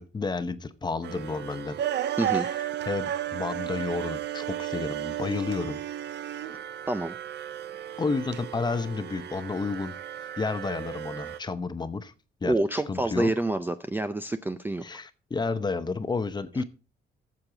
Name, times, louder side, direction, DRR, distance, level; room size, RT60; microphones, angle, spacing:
voice 1, 0.0-1.8 2.3-2.5 2.9-5.8 8.0-9.9 10.4-12.1 12.4-12.6 12.9-13.3 14.8-16.6, left 4 dB, 20° left, 11 dB, 0.8 m, -31 dB
sound 1, 1.0-11.4, right 11 dB, 60° right, 0.6 m, -34 dB
voice 2, 12.4-14.8, right 2 dB, 10° right, 10 dB, 0.5 m, -27 dB
13.0 x 7.3 x 3.9 m, 0.35 s
cardioid pair, 125°, 20 cm